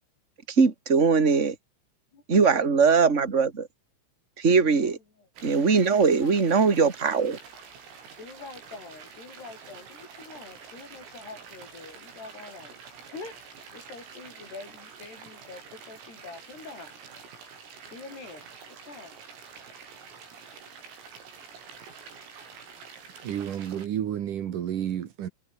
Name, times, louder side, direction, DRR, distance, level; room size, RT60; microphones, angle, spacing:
voice 1, 0.6-1.5 2.3-3.7 4.4-5.0 5.4-7.4, right 5 dB, 35° right, 1.1 m, -21 dB
voice 2, 2.1-2.8 4.8-5.3 5.9-6.4 8.2-12.8 13.1-13.3 13.7-16.9 17.9-19.2, left 3 dB, 55° left, 9.7 m, -45 dB
sound 1, 5.4-23.9, right 6 dB, 90° right, 9.5 m, -47 dB
voice 3, 23.2-25.3, right 10 dB, 60° right, 2.3 m, -31 dB
omnidirectional pair, 5.8 m